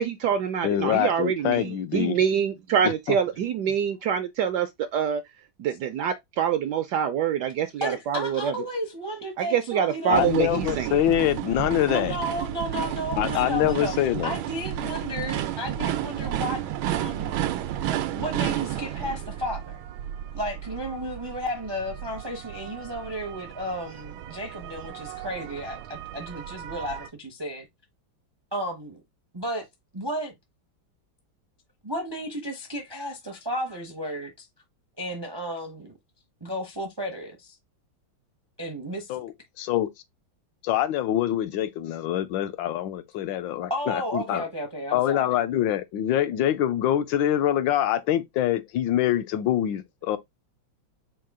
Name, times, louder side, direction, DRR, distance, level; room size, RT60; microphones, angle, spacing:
voice 1, 0.0-5.2 5.6-8.5 9.4-11.0, right 8 dB, 75° right, 1.0 m, -25 dB
voice 2, 0.6-2.2 3.1-3.2 10.1-12.2 13.2-14.3 39.1-39.9 40.6-44.4 44.9-50.2, left 11 dB, 80° left, 1.3 m, -25 dB
voice 3, 7.8-10.3 11.9-13.9 14.2-17.6 17.9-19.8 20.3-27.7 28.5-29.0 29.3-29.7 29.9-30.3 31.8-34.5 35.0-35.9 36.4-37.6 38.6-39.2 43.7-45.3, equal, 35° right, 0.4 m, -33 dB
sound 1, 10.1-27.1, right 11 dB, 90° right, 1.4 m, -32 dB
4.7 x 2.3 x 4.8 m
omnidirectional pair, 2.2 m